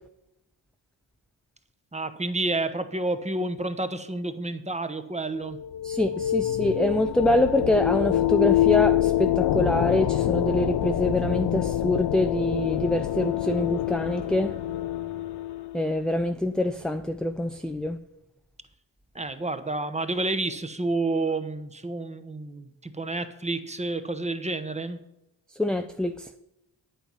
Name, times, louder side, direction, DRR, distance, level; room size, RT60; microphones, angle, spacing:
voice 1, 1.9-5.6 19.1-25.0, right 2 dB, 15° right, 1.0 m, -29 dB
sound 1, 5.4-16.0, left 12 dB, 60° left, 0.6 m, -26 dB
voice 2, 5.8-14.6 15.7-18.0 25.6-26.3, left 1 dB, ahead, 0.4 m, -25 dB
9.0 x 8.7 x 5.7 m
cardioid pair, 75°, 46 cm